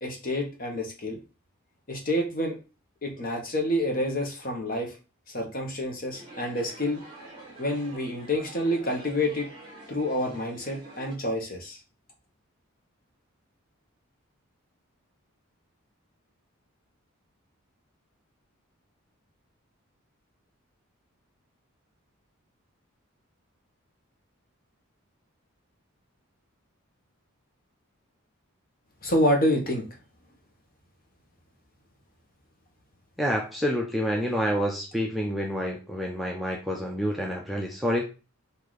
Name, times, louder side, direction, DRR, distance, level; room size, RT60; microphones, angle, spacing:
voice 1, 0.0-1.2 1.9-2.6 3.0-4.9 5.3-7.0 7.6-9.5 9.9-11.8 29.0-29.8, left 1 dB, 40° left, 2 dB, 1.1 m, -28 dB
sound 1, 6.1-11.2, right 2 dB, 20° right, 1.7 m, -47 dB
voice 2, 33.2-38.0, equal, ahead, -1 dB, 0.5 m, -28 dB
4.0 x 2.7 x 4.7 m, 0.32 s
head